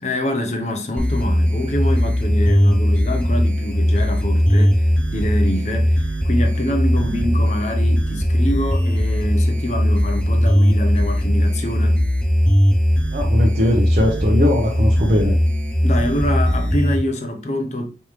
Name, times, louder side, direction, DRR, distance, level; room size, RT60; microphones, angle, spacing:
voice 1, 0.0-12.0 15.8-17.9, left 1 dB, 40° left, 0.8 m, -25 dB
sound 1, 1.0-17.0, equal, 5° left, 0.6 m, -18 dB
voice 2, 13.1-15.4, left 1 dB, 45° right, 0.9 m, -19 dB
5.4 x 3.2 x 3.1 m
head